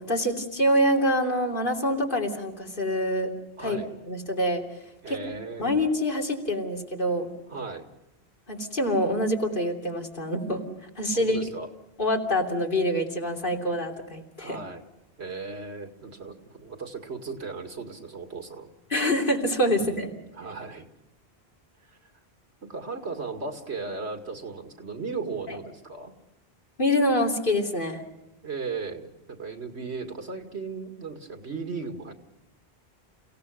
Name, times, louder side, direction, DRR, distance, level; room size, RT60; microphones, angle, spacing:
voice 1, 0.1-3.3 3.6-3.8 4.1-4.6 5.1-5.2 5.6-7.3 8.5-10.6 11.0-11.5 12.0-14.6 18.9-20.1 25.5-25.6 26.8-28.0, equal, 50° left, 1 dB, 3.3 m, -25 dB
voice 2, 3.6-3.9 5.0-5.7 7.5-7.9 11.1-11.7 14.4-14.8 15.2-18.7 19.7-20.9 21.9-22.0 22.6-26.1 28.4-32.1, right 4 dB, 85° right, 6 dB, 2.5 m, -36 dB
29.5 x 17.5 x 6.6 m, 0.93 s
omnidirectional pair, 1.1 m